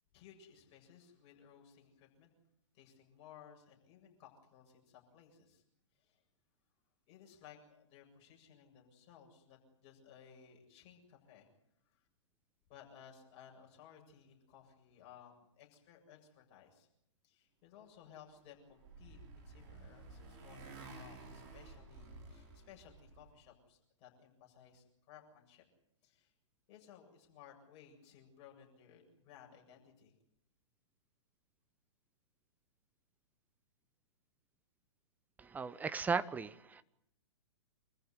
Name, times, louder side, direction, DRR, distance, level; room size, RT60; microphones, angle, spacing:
voice 1, 0.1-2.3 2.7-5.6 5.9-6.2 7.1-11.5 11.8-12.1 12.7-16.9 17.2-19.2 19.4-25.6 26.0-26.3 26.7-30.1, left 8 dB, 35° left, 1 dB, 7.6 m, -59 dB
Motorcycle, 18.3-23.3, right 3 dB, 40° right, 6.0 m, -53 dB
voice 2, 35.4-36.8, right 5 dB, 10° right, 15 dB, 0.9 m, -36 dB
26.5 x 14.5 x 9.8 m, 0.76 s
figure-of-eight pair, 120°, 16 cm